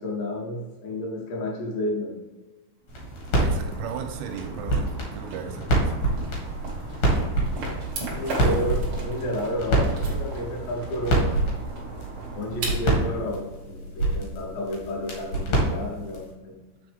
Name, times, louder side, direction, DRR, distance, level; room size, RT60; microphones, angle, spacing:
voice 1, 0.0-2.2 8.1-11.4 12.3-16.6, left 1 dB, 75° left, 3.0 m, -31 dB
sound 1, 2.9-16.3, right 2 dB, 50° left, 2.7 m, -27 dB
sound 2, 2.9-13.6, right 2 dB, 50° right, 1.5 m, -37 dB
voice 2, 3.3-6.1, right 8 dB, 85° right, 3.0 m, -36 dB
sound 3, 7.8-13.1, right 4 dB, 70° right, 1.3 m, -39 dB
8.0 x 5.4 x 3.5 m
omnidirectional pair, 5.8 m